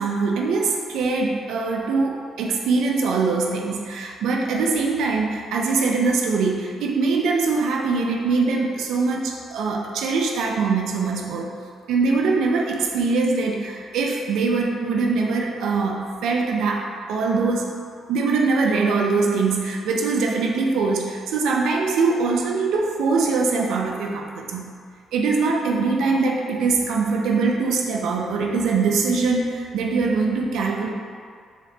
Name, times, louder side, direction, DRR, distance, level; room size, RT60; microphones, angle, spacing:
voice 1, 0.0-11.5 11.9-17.7 18.1-24.7 25.1-30.9, right 4 dB, 80° right, 0 dB, 0.4 m, -22 dB
3.5 x 2.8 x 3.2 m, 2.2 s
cardioid pair, 90°, 0 cm